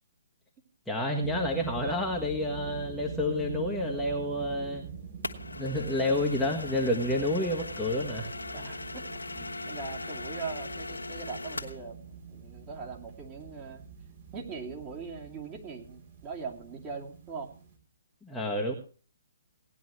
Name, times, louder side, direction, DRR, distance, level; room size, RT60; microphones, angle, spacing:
voice 1, 0.9-4.8 5.6-8.3 18.2-18.7, left 1 dB, 5° left, -3 dB, 1.4 m, -29 dB
sound 1, 1.2-17.7, right 6 dB, 45° right, 3.6 m, -45 dB
sound 2, 5.2-11.8, left 3 dB, 85° left, 1.3 m, -39 dB
voice 2, 7.6-13.8 14.3-17.5, right 5 dB, 25° right, -2 dB, 2.8 m, -41 dB
18.0 x 10.5 x 3.2 m, 0.39 s
figure-of-eight pair, 135°, 0 cm